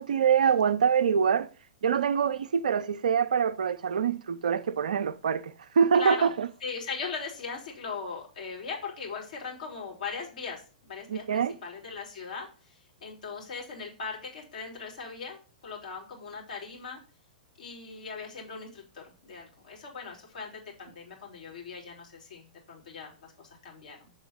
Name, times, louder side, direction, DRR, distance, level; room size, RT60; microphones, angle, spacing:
voice 1, 0.0-1.5 1.8-6.5 11.1-11.5, right 7 dB, 70° right, 0.4 m, -25 dB
voice 2, 5.9-6.3 6.6-17.0 17.6-24.1, left 5 dB, 65° left, 2.5 m, -39 dB
6.2 x 3.7 x 5.3 m
figure-of-eight pair, 110°, 4 cm